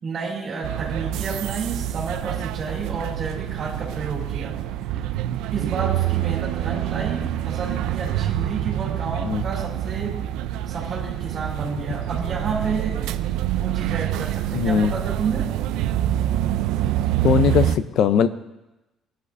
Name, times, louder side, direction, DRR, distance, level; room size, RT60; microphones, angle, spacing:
voice 1, 0.0-4.6 4.9-5.1 5.5-10.2 10.7-13.1 13.5-15.5, right 4 dB, 35° right, -3 dB, 3.8 m, -30 dB
sound 1, 0.6-17.8, right 12 dB, 85° right, 0.4 m, -26 dB
voice 2, 14.5-14.9 17.2-18.3, left 8 dB, 55° left, 12 dB, 0.6 m, -19 dB
19.5 x 11.0 x 2.7 m, 0.99 s
cardioid pair, 160°, 0 cm